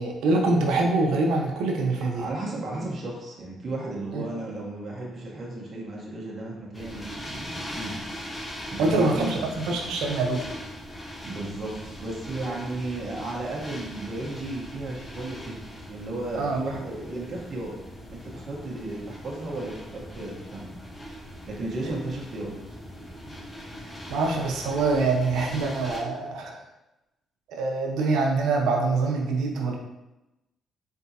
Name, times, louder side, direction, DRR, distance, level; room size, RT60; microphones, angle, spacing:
voice 1, 0.0-2.2 4.1-4.2 8.8-10.4 16.3-16.6 24.1-26.6 27.5-29.8, right 3 dB, 90° right, 1 dB, 0.7 m, -24 dB
voice 2, 2.2-8.0 8.7-9.4 11.2-17.7 18.1-20.7 21.5-22.5, right 2 dB, 45° right, -4 dB, 1.1 m, -34 dB
sound 1, 6.7-26.0, equal, 25° left, 1.1 m, -40 dB
4.0 x 3.5 x 2.8 m, 0.95 s
cardioid pair, 90°, 0 cm